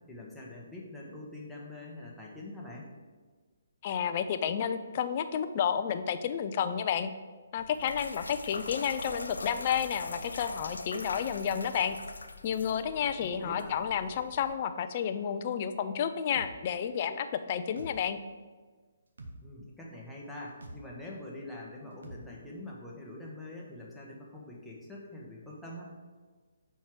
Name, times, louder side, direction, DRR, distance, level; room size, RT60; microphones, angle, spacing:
voice 1, 0.0-2.9 13.2-13.7 19.4-25.8, left 1 dB, 5° left, -5 dB, 1.2 m, -44 dB
voice 2, 3.8-7.1 7.5-12.0 12.4-18.2, left 8 dB, 40° left, 10 dB, 0.4 m, -31 dB
sound 1, 7.6-14.5, left 3 dB, 90° left, 0.5 m, -42 dB
sound 2, 16.3-16.5 17.8-18.0 19.2-19.4 20.6-20.8 22.0-22.2, right 2 dB, 80° right, 1.0 m, -45 dB
5.6 x 4.5 x 4.7 m, 1.4 s
hypercardioid pair, 150°, 0 cm